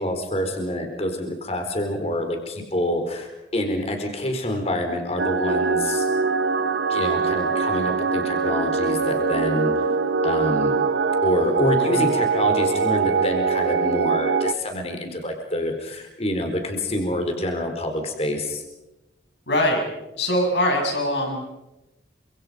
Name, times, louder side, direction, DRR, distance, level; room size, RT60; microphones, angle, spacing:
voice 1, 0.0-6.0 6.9-9.7 10.2-10.7 11.2-18.6, left 1 dB, 35° left, 4 dB, 4.3 m, -26 dB
sound 1, 5.2-14.5, right 4 dB, 85° right, 1.0 m, -22 dB
voice 2, 11.8-12.1 19.5-19.8 20.2-21.6, left 1 dB, 80° left, 2 dB, 6.9 m, -23 dB
29.5 x 26.0 x 5.3 m, 0.99 s
head